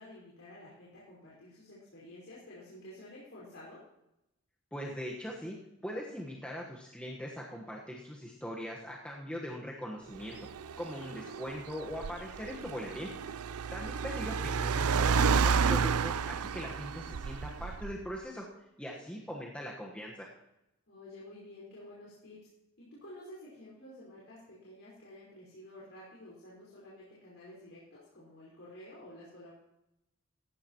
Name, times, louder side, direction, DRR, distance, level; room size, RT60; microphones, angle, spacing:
voice 1, 0.0-3.8 10.9-11.4 20.9-22.4 22.8-29.5, left 1 dB, 60° left, -7 dB, 5.1 m, -51 dB
voice 2, 4.7-5.6 5.8-10.4 10.8-13.1 13.7-18.4 18.8-20.3, equal, 5° left, -3 dB, 1.3 m, -41 dB
Car, 10.2-18.1, right 5 dB, 85° right, 0.5 m, -31 dB
18.0 x 14.5 x 3.0 m, 0.88 s
head